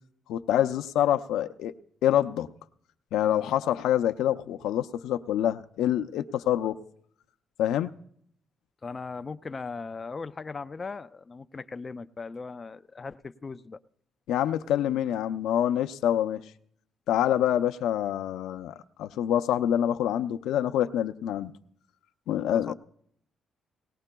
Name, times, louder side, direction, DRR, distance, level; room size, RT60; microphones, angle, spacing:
voice 1, 0.3-1.7 2.0-2.5 3.1-6.8 7.6-7.9 14.3-16.4 17.1-21.5 22.3-22.7, left 11 dB, 85° left, 0.5 m, -26 dB
voice 2, 8.8-13.8 22.5-22.7, left 4 dB, 30° left, 0.4 m, -38 dB
19.0 x 18.5 x 2.2 m
cardioid pair, 90°, 0 cm